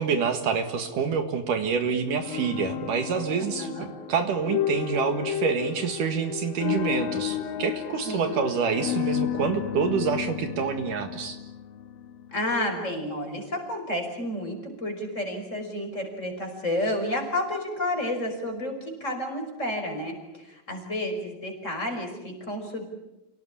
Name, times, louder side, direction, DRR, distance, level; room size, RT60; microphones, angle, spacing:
voice 1, 0.0-11.4, right 6 dB, 65° right, 7 dB, 3.1 m, -27 dB
sound 1, 2.2-12.3, left 11 dB, 90° left, 3.1 m, -32 dB
voice 2, 3.6-3.9 8.1-8.3 12.3-22.8, left 1 dB, 20° left, 3 dB, 5.6 m, -31 dB
29.5 x 18.0 x 9.9 m, 0.96 s
omnidirectional pair, 4.1 m